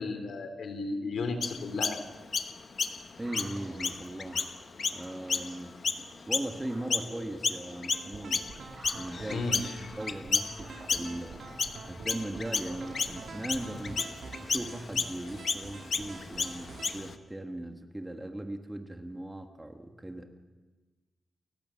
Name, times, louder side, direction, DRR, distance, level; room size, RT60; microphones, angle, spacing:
voice 1, 0.0-2.0 9.3-9.6, left 3 dB, 80° left, 8 dB, 3.2 m, -34 dB
Chirp tweet, 1.4-7.1 7.4-17.2, left 5 dB, 45° left, 1.1 m, -33 dB
voice 2, 3.2-4.5 4.9-8.6 8.9-9.5 10.0-11.5 11.9-20.4, right 1 dB, 10° right, 5 dB, 1.4 m, -39 dB
sound 1, 3.2-14.3, right 2 dB, 40° right, 7.6 m, -52 dB
sound 2, 7.9-17.0, right 4 dB, 75° right, 3.0 m, -46 dB
29.0 x 15.0 x 8.6 m, 1.3 s
wide cardioid pair, 180°, 0 cm